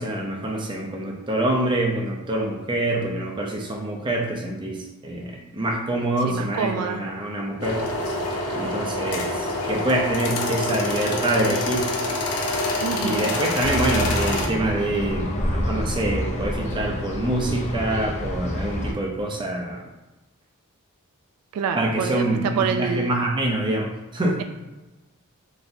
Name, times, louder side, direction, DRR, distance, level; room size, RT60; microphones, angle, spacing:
voice 1, 0.0-7.9 8.5-11.9 12.9-19.8 21.7-24.4, right 1 dB, 20° right, 1 dB, 0.5 m, -26 dB
voice 2, 6.2-7.0 12.8-13.3 21.5-23.2, right 6 dB, 75° right, 10 dB, 0.3 m, -27 dB
sound 1, 7.6-14.5, left 2 dB, 80° left, 0.6 m, -26 dB
sound 2, 13.6-18.9, left 1 dB, 30° left, 0.4 m, -28 dB
4.0 x 3.3 x 2.6 m, 1.1 s
head